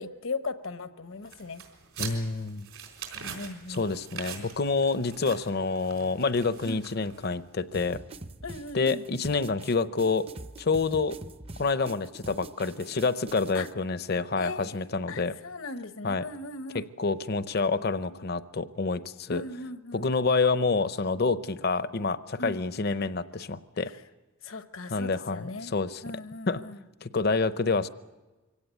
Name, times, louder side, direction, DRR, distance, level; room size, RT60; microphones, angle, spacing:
voice 1, 0.0-1.6 3.1-3.9 6.6-6.9 8.4-9.0 13.5-13.7 14.4-16.9 19.3-20.1 22.4-22.6 23.8-24.0 24.4-25.7 26.0-26.8, left 3 dB, 70° left, 10 dB, 1.0 m, -38 dB
sound 1, 1.2-7.5, right 7 dB, 80° right, 4.0 m, -43 dB
voice 2, 2.0-2.7 3.7-8.0 8.7-10.3 10.6-11.2 11.6-15.3 16.0-16.2 16.7-19.4 19.9-23.9 24.9-26.0 26.5-26.6 27.0-27.9, left 4 dB, 50° left, 14 dB, 0.7 m, -28 dB
sound 2, 7.7-13.7, right 2 dB, 25° right, 0.6 m, -44 dB
24.0 x 17.0 x 8.3 m, 1.2 s
head